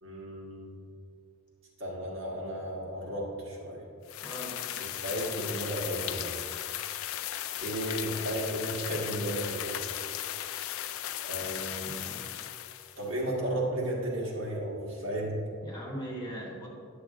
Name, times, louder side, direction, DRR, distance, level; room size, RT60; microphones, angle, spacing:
voice 1, 0.0-0.8 1.8-3.8 4.9-6.2 7.6-9.8 11.2-12.0 13.0-15.4, right 1 dB, 60° right, -4 dB, 1.5 m, -34 dB
sound 1, 4.1-13.1, left 12 dB, 70° left, 0.3 m, -36 dB
voice 2, 4.2-4.7 11.3-12.4 15.6-16.7, equal, 20° left, -3 dB, 1.0 m, -41 dB
10.0 x 7.0 x 2.5 m, 2.4 s
head